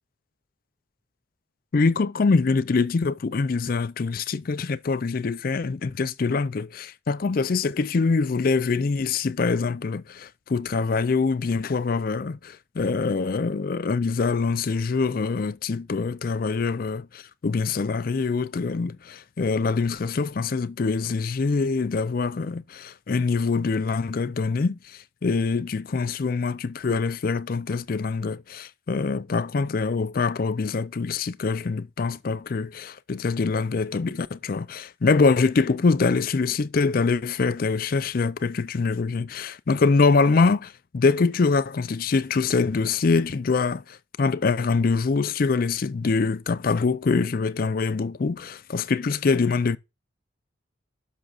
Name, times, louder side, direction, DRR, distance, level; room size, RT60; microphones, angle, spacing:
voice 1, 1.7-49.8, left 4 dB, 45° left, 0.4 m, -24 dB
11.5 x 6.0 x 2.4 m
head